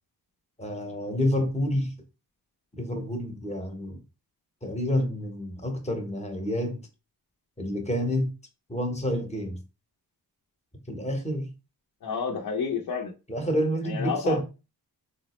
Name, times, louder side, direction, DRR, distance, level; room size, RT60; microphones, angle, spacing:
voice 1, 0.6-1.9 2.8-4.0 4.6-6.8 7.6-8.3 8.7-9.6 10.9-11.5 13.3-14.4, equal, 15° left, 0.9 m, -28 dB
voice 2, 12.0-13.1 13.9-14.4, left 6 dB, 55° left, 0.7 m, -30 dB
3.5 x 2.0 x 3.0 m
cardioid pair, 55°, 42 cm